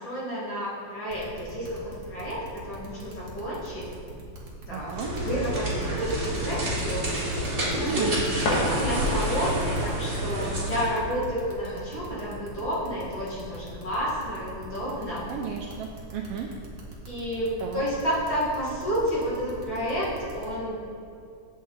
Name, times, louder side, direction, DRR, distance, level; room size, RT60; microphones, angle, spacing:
voice 1, 0.0-2.4 2.6-3.9 4.7-7.1 7.7-15.3 17.1-20.1 20.3-20.8, equal, 45° left, -8 dB, 2.2 m, -30 dB
sound 1, 1.1-20.5, right 2 dB, 50° right, 0.7 m, -43 dB
voice 2, 4.7-5.1 7.8-8.2 15.3-16.5 17.6-17.8, right 7 dB, 80° right, 1 dB, 1.3 m, -33 dB
sound 2, 4.9-10.9, right 1 dB, 35° right, 1.9 m, -29 dB
sound 3, 8.3-9.4, left 2 dB, 75° left, 2.7 m, -30 dB
8.4 x 7.4 x 3.9 m, 2.5 s
omnidirectional pair, 3.3 m